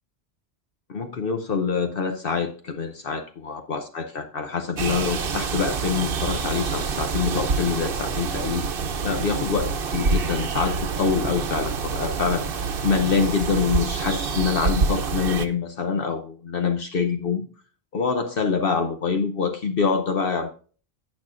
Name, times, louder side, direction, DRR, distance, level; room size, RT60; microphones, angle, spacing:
voice 1, 0.9-8.7 9.0-17.4 17.9-20.5, left 5 dB, 60° left, 0.9 m, -25 dB
sound 1, 4.8-15.5, right 5 dB, 60° right, 0.9 m, -27 dB
17.5 x 6.2 x 2.5 m
omnidirectional pair, 1.1 m